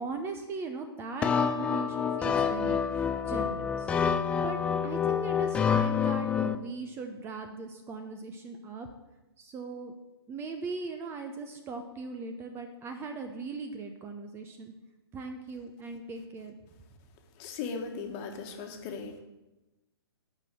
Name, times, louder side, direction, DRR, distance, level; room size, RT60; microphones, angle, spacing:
voice 1, 0.0-3.9 4.4-4.6 4.8-8.9 9.4-9.9 10.3-14.7 15.1-16.6, right 4 dB, 15° right, 6 dB, 0.7 m, -39 dB
sound 1, 1.2-6.6, left 7 dB, 10° left, 0.3 m, -27 dB
voice 2, 17.4-19.2, left 5 dB, 35° left, 4 dB, 1.5 m, -37 dB
8.9 x 6.1 x 7.6 m, 1.0 s
hypercardioid pair, 135°, 14 cm